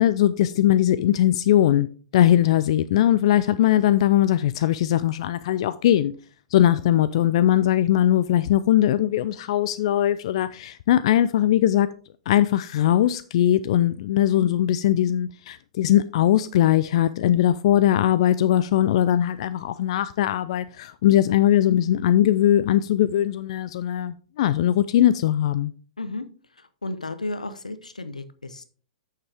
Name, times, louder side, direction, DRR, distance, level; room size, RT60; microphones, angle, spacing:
voice 1, 0.0-6.1 6.5-11.9 12.3-25.7, left 12 dB, 55° left, 0.4 m, -20 dB
voice 2, 26.8-28.7, left 2 dB, 85° left, 0.9 m, -33 dB
8.8 x 6.6 x 3.4 m
figure-of-eight pair, 110°, 4 cm